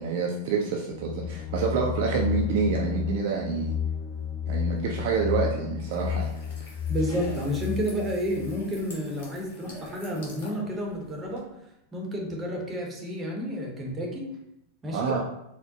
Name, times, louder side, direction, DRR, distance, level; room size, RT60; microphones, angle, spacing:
voice 1, 0.0-3.7 4.5-6.3 14.9-15.2, right 5 dB, 50° right, -1 dB, 0.4 m, -27 dB
sound 1, 0.9-8.6, left 8 dB, 25° left, 0.6 m, -32 dB
sound 2, 5.8-11.4, left 1 dB, 50° left, 1.1 m, -46 dB
voice 2, 6.9-11.5 11.9-14.3 14.8-15.1, equal, 20° right, -1 dB, 0.8 m, -30 dB
4.3 x 2.1 x 2.7 m, 0.83 s
figure-of-eight pair, 90°, 0 cm